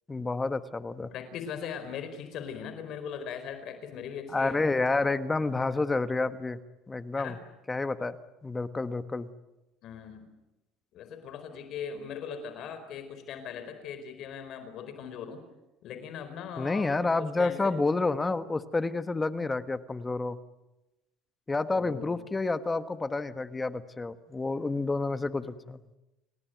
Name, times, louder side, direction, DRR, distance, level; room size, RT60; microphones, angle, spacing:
voice 1, 0.1-1.1 4.3-6.6 6.9-7.3 7.7-8.2 8.4-9.3 16.6-20.4 21.5-25.8, left 3 dB, 15° left, 11 dB, 1.3 m, -29 dB
voice 2, 1.1-4.6 7.1-7.4 9.8-10.3 10.9-15.4 15.8-17.8 21.7-22.2, left 7 dB, 60° left, 9 dB, 4.6 m, -40 dB
30.0 x 19.5 x 9.3 m, 0.99 s
cardioid pair, 120°, 0 cm